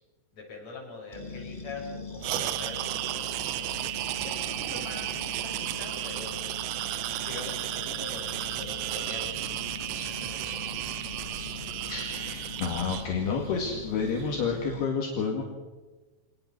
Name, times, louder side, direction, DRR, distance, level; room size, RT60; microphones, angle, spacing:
voice 1, 0.3-3.8 4.2-6.6 6.9-9.5 10.0-10.8, left 3 dB, 35° left, -2 dB, 7.6 m, -44 dB
sound 1, 1.1-14.8, left 4 dB, 15° left, 1.9 m, -42 dB
sound 2, 2.2-13.0, right 14 dB, 80° right, 2.9 m, -33 dB
sound 3, 8.0-14.6, right 1 dB, 30° right, 4.4 m, -47 dB
voice 2, 11.9-15.4, left 5 dB, 65° left, 1 dB, 3.9 m, -30 dB
26.0 x 19.5 x 6.1 m, 1.2 s
omnidirectional pair, 5.3 m